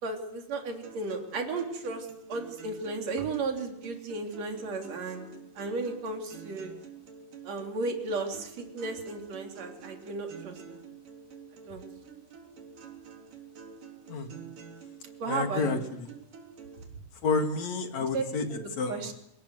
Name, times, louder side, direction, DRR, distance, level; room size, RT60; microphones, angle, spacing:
voice 1, 0.0-5.3 5.6-6.7 7.4-10.8 11.7-11.8 15.2-15.8 18.0-18.2 18.5-19.1, right 3 dB, 55° right, 2 dB, 4.4 m, -34 dB
sound 1, 0.8-16.8, right 6 dB, 85° right, 5.2 m, -48 dB
voice 2, 15.3-16.1 17.2-19.1, left 4 dB, 60° left, 5 dB, 3.5 m, -30 dB
28.0 x 18.5 x 8.1 m, 0.80 s
omnidirectional pair, 3.7 m